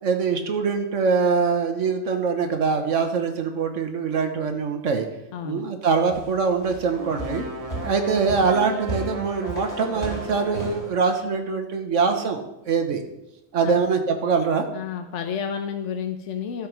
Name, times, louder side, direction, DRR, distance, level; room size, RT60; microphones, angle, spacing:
voice 1, 0.0-5.1 5.4-7.4 7.8-13.0 13.5-14.6, right 5 dB, 75° right, 6 dB, 1.4 m, -23 dB
voice 2, 5.3-5.7 13.6-13.8 14.7-16.7, left 7 dB, 75° left, 6 dB, 1.0 m, -31 dB
sound 1, 6.1-10.9, right 1 dB, 30° left, 2.9 m, -35 dB
sound 2, 6.9-10.9, right 2 dB, 30° right, 1.0 m, -36 dB
12.5 x 4.7 x 6.0 m, 0.91 s
omnidirectional pair, 1.3 m